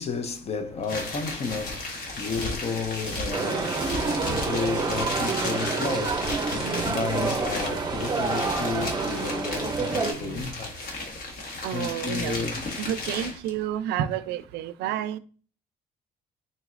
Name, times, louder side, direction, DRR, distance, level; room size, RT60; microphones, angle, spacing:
voice 1, 0.0-10.8 11.2-12.6, left 4 dB, 40° left, 0.6 m, -33 dB
sound 1, 0.8-13.5, left 2 dB, 55° left, 1.3 m, -34 dB
sound 2, 3.3-10.1, right 4 dB, 25° right, 0.6 m, -28 dB
voice 2, 6.6-7.0 8.9-9.1 10.0-10.4 11.6-12.4 12.8-15.2, right 10 dB, 80° right, 0.4 m, -31 dB
3.9 x 3.9 x 2.4 m
cardioid pair, 110°, 17 cm